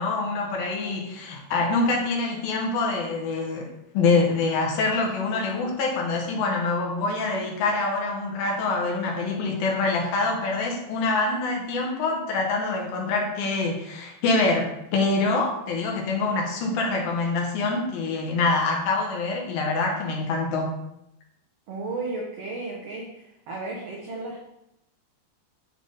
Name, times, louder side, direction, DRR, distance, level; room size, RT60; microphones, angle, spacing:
voice 1, 0.0-3.7 3.9-20.7, left 3 dB, 80° left, 0 dB, 3.0 m, -25 dB
voice 2, 21.7-24.4, right 3 dB, 85° right, -2 dB, 1.3 m, -34 dB
9.9 x 3.4 x 4.0 m, 0.82 s
omnidirectional pair, 4.2 m